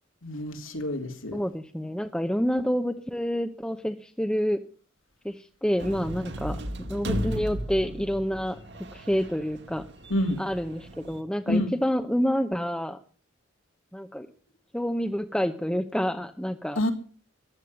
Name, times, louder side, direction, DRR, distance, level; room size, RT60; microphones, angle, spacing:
voice 1, 0.2-1.4 10.1-10.4 11.5-11.7 16.8-16.9, left 1 dB, 80° left, 3.0 m, -27 dB
voice 2, 1.3-4.6 5.2-8.6 8.9-9.9 10.4-13.0 13.9-14.3 14.7-16.8, equal, 5° left, 0.8 m, -28 dB
sound 1, 5.8-11.2, equal, 55° right, 2.1 m, -35 dB
15.0 x 11.0 x 7.7 m
head